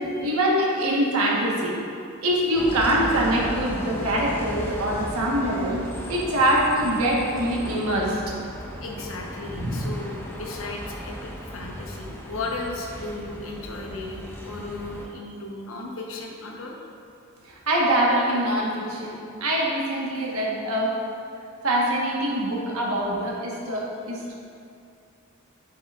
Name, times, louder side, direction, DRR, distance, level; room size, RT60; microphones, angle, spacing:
voice 1, 0.0-1.7 2.2-5.8 6.1-8.2 9.5-9.8 17.4-20.9 21.6-24.3, right 1 dB, 85° right, -3 dB, 1.4 m, -24 dB
Bus, 2.5-15.1, equal, 10° left, 0.6 m, -36 dB
voice 2, 8.8-16.8, left 2 dB, 70° left, 0 dB, 1.0 m, -35 dB
7.8 x 7.5 x 2.5 m, 2.5 s
head